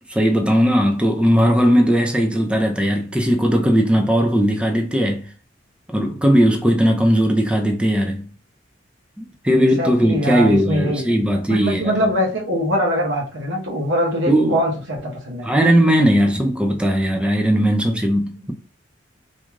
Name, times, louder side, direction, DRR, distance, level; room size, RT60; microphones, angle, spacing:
voice 1, 0.1-5.3 5.9-8.3 9.2-11.9 14.3-14.6 15.4-18.5, equal, 5° right, 0.3 m, -18 dB
voice 2, 9.5-11.1 11.5-15.5, equal, 65° right, 0.8 m, -23 dB
2.5 x 2.2 x 3.0 m
head